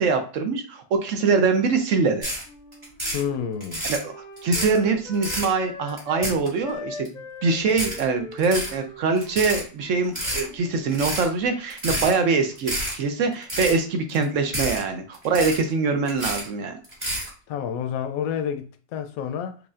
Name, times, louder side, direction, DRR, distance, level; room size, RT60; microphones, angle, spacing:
voice 1, 0.0-2.3 3.9-4.1 4.4-7.1 7.4-16.8, right 4 dB, 70° right, 1.0 m, -23 dB
sound 1, 2.2-2.4 2.7-3.2 3.6-4.0 4.4-4.8 5.1-5.5 5.9-6.7 7.0-7.1 7.7-8.0 8.4-8.7 9.1-9.6 10.0-10.4 10.9-11.3 11.7-12.1 12.5-12.9 13.3-13.8 14.1-14.2 14.5-14.8 15.1-15.7 16.1-16.5 16.8-17.3, equal, 20° right, 1.6 m, -29 dB
Wind instrument woodwind instrument, 2.4-6.3 6.6-10.2 10.4-11.0, left 3 dB, 45° left, 0.6 m, -40 dB
voice 2, 3.1-3.8 17.5-19.6, left 8 dB, 85° left, 1.0 m, -29 dB
4.9 x 2.6 x 2.4 m
omnidirectional pair, 1.4 m